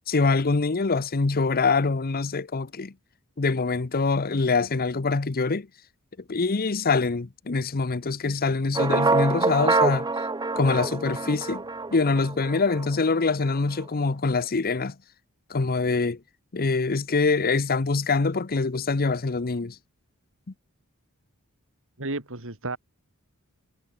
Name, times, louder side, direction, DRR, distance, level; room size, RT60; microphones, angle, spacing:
voice 1, 0.1-2.9 3.4-5.7 6.3-10.1 10.6-11.6 11.9-14.9 15.5-16.2 16.5-19.8, left 4 dB, 45° left, 0.8 m, -24 dB
sound 1, 8.7-12.9, right 3 dB, 20° right, 0.7 m, -25 dB
voice 2, 22.0-22.8, right 2 dB, 65° right, 3.5 m, -32 dB
head